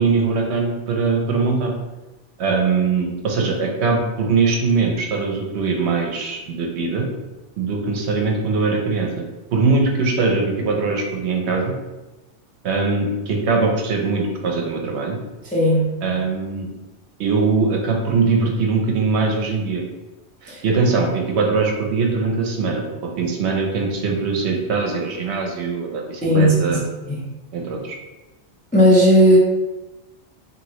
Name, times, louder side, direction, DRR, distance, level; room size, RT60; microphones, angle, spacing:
voice 1, 0.0-1.7 2.4-7.1 7.6-9.2 9.5-11.7 12.6-15.2 16.0-16.7 17.2-19.8 20.4-22.8 23.2-26.8 27.5-28.0, right 4 dB, 70° right, 1 dB, 0.8 m, -21 dB
voice 2, 15.5-15.9 20.5-20.6 26.2-26.8 27.0-27.2 28.7-29.4, equal, 15° left, -6 dB, 0.3 m, -15 dB
2.7 x 2.7 x 3.0 m, 1.1 s
omnidirectional pair, 1.2 m